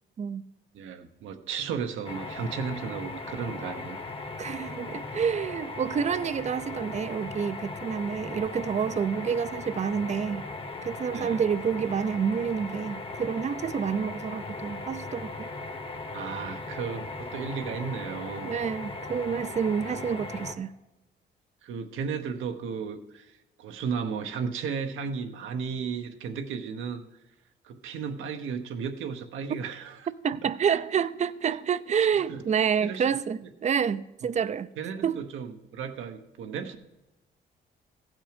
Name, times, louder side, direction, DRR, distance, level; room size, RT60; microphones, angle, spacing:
voice 1, 0.7-4.0 11.1-11.4 16.1-18.5 19.8-20.0 21.6-27.0 27.6-30.1 30.4-30.5 32.0-32.4 32.8-33.2 33.4-33.5 34.8-36.8, right 6 dB, 85° right, 1.0 m, -34 dB
sound 1, 2.0-20.5, left 3 dB, 30° left, 1.0 m, -38 dB
voice 2, 4.4-10.4 10.8-15.5 18.4-20.7 30.2-34.7 35.0-35.2, right 7 dB, 35° right, 0.5 m, -28 dB
15.5 x 6.2 x 5.0 m
cardioid pair, 90°, 20 cm